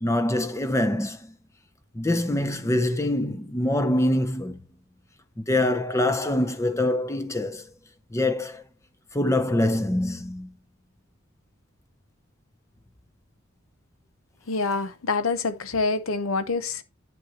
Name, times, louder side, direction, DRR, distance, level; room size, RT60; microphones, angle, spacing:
voice 1, 0.0-1.3 1.9-4.6 5.4-7.7 8.1-8.6 9.1-10.5, left 1 dB, 15° left, 0.6 m, -24 dB
voice 2, 14.5-16.8, left 4 dB, 75° left, 0.8 m, -26 dB
8.9 x 7.8 x 2.8 m
head